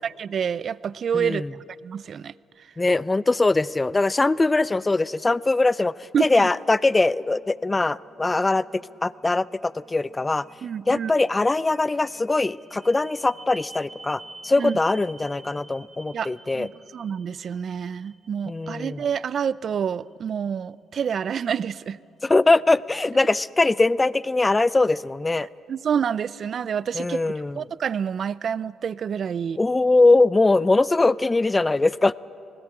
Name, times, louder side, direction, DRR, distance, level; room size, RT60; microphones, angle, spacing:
voice 1, 0.0-1.4 1.8-2.7 6.1-6.5 10.6-11.1 14.6-14.8 16.1-22.0 25.7-29.6, right 7 dB, 55° right, 19 dB, 0.4 m, -28 dB
voice 2, 1.1-1.5 2.8-10.4 10.9-16.7 18.5-19.0 22.2-25.5 26.9-27.6 29.6-32.1, left 2 dB, 20° left, 19 dB, 0.4 m, -21 dB
sound 1, 7.0-24.7, right 2 dB, 20° right, 4.8 m, -51 dB
20.0 x 18.5 x 8.7 m, 2.5 s
cardioid pair, 90°, 0 cm